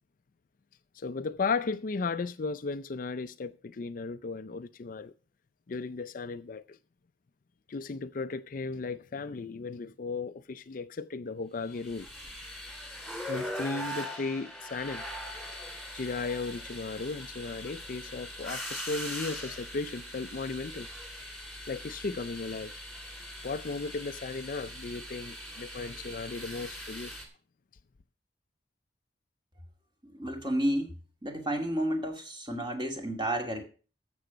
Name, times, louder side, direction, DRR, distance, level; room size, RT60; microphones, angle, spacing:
voice 1, 0.9-5.1 5.7-6.8 7.7-12.1 13.3-15.0 15.9-20.9 21.7-22.7 23.4-27.2, left 4 dB, 50° left, 0.5 m, -35 dB
sound 1, 11.7-27.3, equal, ahead, 2.8 m, -41 dB
voice 2, 30.1-30.9 31.2-33.7, right 1 dB, 25° right, 2.1 m, -31 dB
13.0 x 7.0 x 5.1 m
head